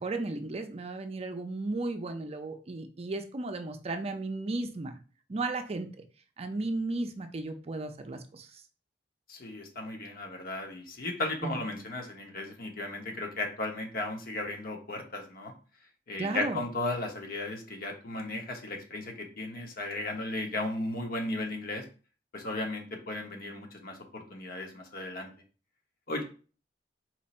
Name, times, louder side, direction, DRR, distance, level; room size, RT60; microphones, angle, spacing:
voice 1, 0.0-5.0 5.3-5.9 6.4-8.6 11.4-11.6 16.2-16.6, right 2 dB, 35° right, 6 dB, 0.5 m, -34 dB
voice 2, 9.3-15.5 16.1-21.8 22.3-25.3 26.1-26.2, left 2 dB, 55° left, 3 dB, 1.0 m, -35 dB
4.4 x 2.6 x 4.2 m, 0.36 s
head